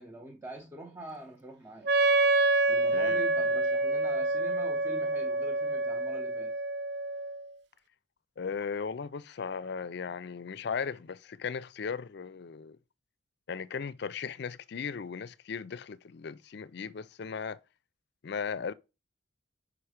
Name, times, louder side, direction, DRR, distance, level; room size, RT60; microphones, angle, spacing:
voice 1, 0.0-1.9 2.7-6.6, right 1 dB, 15° right, 0.7 m, -44 dB
Wind instrument woodwind instrument, 1.8-7.5, right 2 dB, 60° right, 0.5 m, -27 dB
voice 2, 2.9-3.3 8.4-12.8 13.5-17.6 18.2-18.7, left 6 dB, 55° left, 0.4 m, -37 dB
5.8 x 4.9 x 4.9 m
head